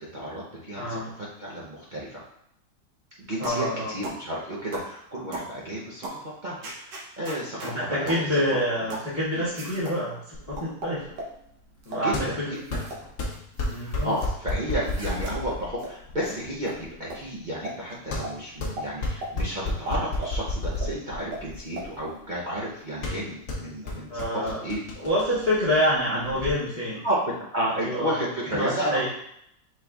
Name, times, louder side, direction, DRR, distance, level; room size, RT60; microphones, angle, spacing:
voice 1, 0.1-2.2 3.2-8.3 11.9-12.4 12.7-12.8 13.7-24.8 27.0-29.1, right 1 dB, 50° right, -6 dB, 0.5 m, -32 dB
voice 2, 0.8-1.1 3.4-4.0 7.6-11.2 11.9-12.6 13.6-14.1 24.1-24.6 25.0-27.0 27.8-28.2 28.6-29.1, equal, 30° left, -9 dB, 0.8 m, -27 dB
sound 1, 3.4-3.7 4.0-4.2 4.7-4.9 5.3-5.5 6.0-6.2 6.6-7.7 8.1-8.3 8.9-9.1 9.5-10.0 10.6-11.3 11.8-12.1 12.5-13.0 13.3-14.3 14.8-15.3 15.8-15.9 16.2-16.4 16.6-16.7 17.1-17.2 17.6-17.8 18.2-18.3 18.8-18.9 19.2-19.3 19.9-20.4 20.8-20.9 21.3-21.4 21.8-21.9, right 1 dB, 75° right, 1.7 m, -36 dB
sound 2, 10.3-26.5, left 2 dB, 55° left, 0.9 m, -33 dB
5.3 x 3.9 x 2.3 m, 0.74 s
omnidirectional pair, 1.9 m